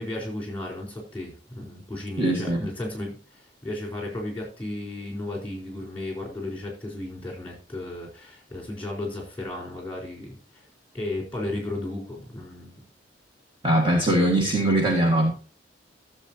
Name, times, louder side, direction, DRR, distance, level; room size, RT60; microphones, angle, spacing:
voice 1, 0.0-10.6 10.9-12.8, left 1 dB, 10° left, -1 dB, 4.3 m, -34 dB
voice 2, 2.2-2.6 13.6-15.3, right 1 dB, 30° right, -1 dB, 1.8 m, -21 dB
14.5 x 7.4 x 2.8 m, 0.35 s
head